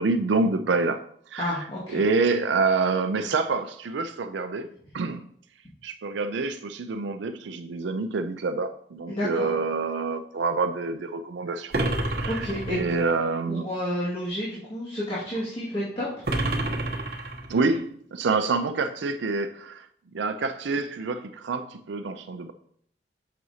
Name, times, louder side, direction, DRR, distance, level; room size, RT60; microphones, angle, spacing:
voice 1, 0.0-5.3 5.8-11.7 12.1-12.5 12.7-13.7 17.5-19.9 20.1-22.5, right 4 dB, 90° right, 7 dB, 0.5 m, -27 dB
voice 2, 1.4-2.0 9.1-9.5 12.2-13.0 13.5-16.1, equal, 30° left, -8 dB, 1.9 m, -30 dB
sound 1, 11.7-13.2 16.3-17.8, right 1 dB, 60° right, 1.0 m, -29 dB
8.3 x 6.0 x 2.8 m, 0.64 s
head